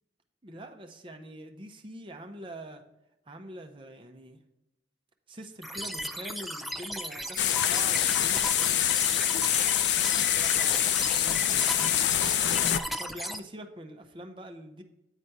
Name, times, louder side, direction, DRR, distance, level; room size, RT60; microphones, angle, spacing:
voice 1, 0.4-2.8 3.3-4.4 5.3-9.4 9.9-12.1 13.0-14.8, right 1 dB, 30° right, 4 dB, 0.8 m, -44 dB
sound 1, 5.6-13.4, equal, ahead, 0.3 m, -36 dB
sound 2, 7.4-12.8, left 11 dB, 80° left, 0.4 m, -25 dB
9.0 x 4.1 x 4.6 m, 0.90 s
head